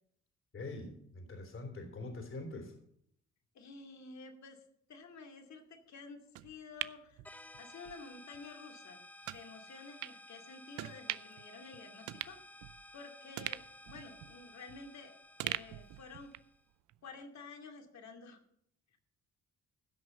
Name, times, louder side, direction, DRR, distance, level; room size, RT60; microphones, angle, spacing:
voice 1, 0.5-2.7, left 2 dB, 45° left, 4 dB, 3.4 m, -44 dB
voice 2, 3.5-4.6 4.9-7.2 7.6-9.0 9.3-12.4 12.9-15.1 15.4-16.3 17.0-18.4, left 4 dB, 65° left, 4 dB, 2.5 m, -51 dB
sound 1, 6.4-8.0 8.3-8.5 9.2-9.4 10.0-10.2 10.8-11.4 11.7-11.8 12.1-13.0 13.4-15.0 15.4-16.6 16.9-17.0, right 16 dB, 85° right, 0.5 m, -42 dB
sound 2, 7.2-16.6, left 1 dB, 5° left, 0.7 m, -55 dB
16.0 x 6.4 x 6.7 m, 0.71 s
cardioid pair, 90°, 30 cm